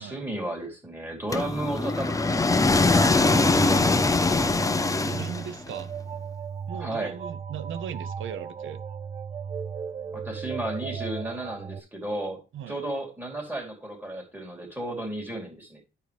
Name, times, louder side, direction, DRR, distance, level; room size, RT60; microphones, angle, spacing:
voice 1, 0.0-2.6 2.9-3.9 6.7-7.2 10.1-12.4 12.7-15.8, right 1 dB, 10° right, 3.4 m, -34 dB
sound 1, 1.3-5.7, left 3 dB, 15° left, 0.6 m, -22 dB
sound 2, 3.1-11.8, right 7 dB, 30° right, 0.5 m, -36 dB
voice 2, 5.0-5.9 6.7-8.8 12.5-12.8, right 8 dB, 70° right, 0.9 m, -38 dB
12.0 x 4.8 x 3.4 m
cardioid pair, 105°, 21 cm